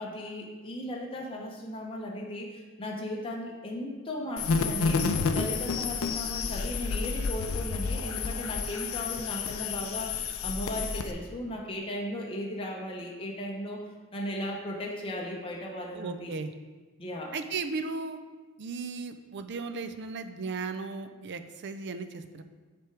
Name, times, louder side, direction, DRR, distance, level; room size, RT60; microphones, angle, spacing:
voice 1, 0.0-16.3 17.0-17.3, left 1 dB, 25° left, -1 dB, 0.6 m, -36 dB
sound 1, 4.4-11.1, left 4 dB, 65° left, 0.4 m, -30 dB
voice 2, 15.9-16.5 17.3-18.2 18.6-22.4, right 4 dB, 55° right, 9 dB, 0.4 m, -36 dB
7.7 x 3.4 x 4.5 m, 1.3 s
head